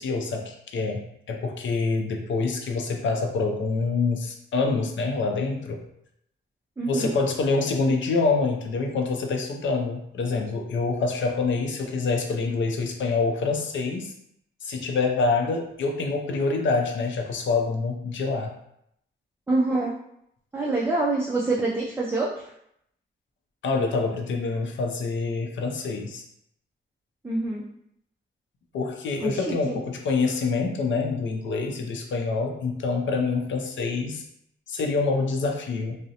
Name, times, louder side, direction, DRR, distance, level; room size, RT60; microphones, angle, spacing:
voice 1, 0.0-5.8 6.8-14.1 14.6-18.5 23.6-26.2 28.7-34.2 34.7-36.0, left 4 dB, 70° left, 3 dB, 0.5 m, -26 dB
voice 2, 6.8-7.1 19.5-19.9 20.5-22.4 27.2-27.6 29.2-29.8, right 2 dB, 10° right, -5 dB, 0.3 m, -26 dB
2.5 x 2.0 x 2.7 m, 0.74 s
wide cardioid pair, 120°, 20 cm